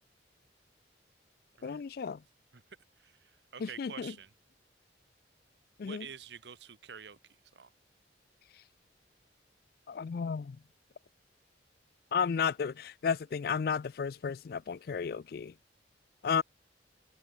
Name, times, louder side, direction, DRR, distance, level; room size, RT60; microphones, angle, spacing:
voice 1, 1.6-2.2 3.6-4.1 5.8-6.1 9.9-10.6 12.1-15.5 16.2-16.4, left 6 dB, 55° left, 0.4 m, -33 dB
voice 2, 3.0-4.3 5.8-7.2 7.5-7.7, right 7 dB, 75° right, 1.0 m, -48 dB
head